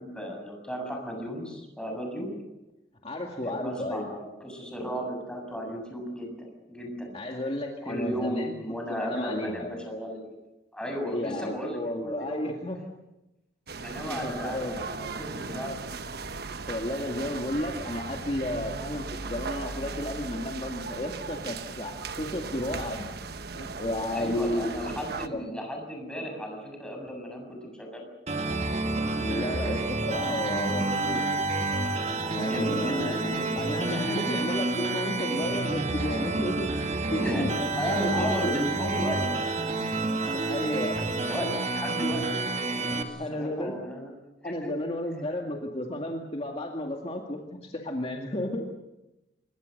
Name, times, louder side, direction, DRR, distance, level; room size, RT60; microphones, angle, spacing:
voice 1, 0.0-2.3 3.4-7.2 7.8-10.2 10.7-12.5 13.8-15.7 24.1-28.0 32.4-34.4 37.2-37.5 37.8-39.2 40.1-42.2 42.7-44.1 44.4-44.7, equal, 5° left, 2 dB, 7.2 m, -34 dB
voice 2, 3.0-4.1 7.1-8.5 8.9-9.7 11.1-12.8 14.0-14.8 16.7-23.1 23.5-25.0 25.3-25.5 29.2-31.3 32.3-33.2 33.6-36.7 37.1-37.6 38.1-38.6 40.3-41.0 43.2-43.8 44.4-48.7, left 1 dB, 35° left, 1 dB, 2.1 m, -33 dB
sound 1, 13.7-25.3, right 4 dB, 60° right, 1.2 m, -37 dB
sound 2, 28.3-43.0, right 2 dB, 40° right, 2.4 m, -29 dB
26.5 x 23.0 x 6.6 m, 0.97 s
head